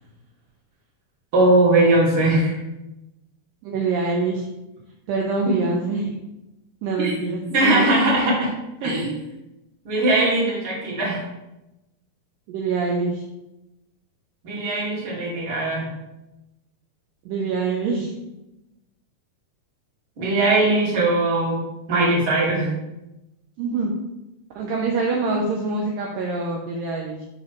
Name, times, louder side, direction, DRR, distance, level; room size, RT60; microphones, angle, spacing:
voice 1, 1.3-2.6 7.0-7.1 7.5-8.5 8.8-9.1 9.8-11.2 14.4-15.9 20.2-21.6 21.9-22.7, right 2 dB, 40° right, -4 dB, 2.4 m, -20 dB
voice 2, 3.6-4.5 5.1-6.2 6.8-8.0 8.8-9.0 12.5-13.2 17.3-18.2 23.6-23.9 24.6-27.2, right 4 dB, 75° right, -1 dB, 2.3 m, -25 dB
9.6 x 5.4 x 3.1 m, 0.95 s
omnidirectional pair, 4.4 m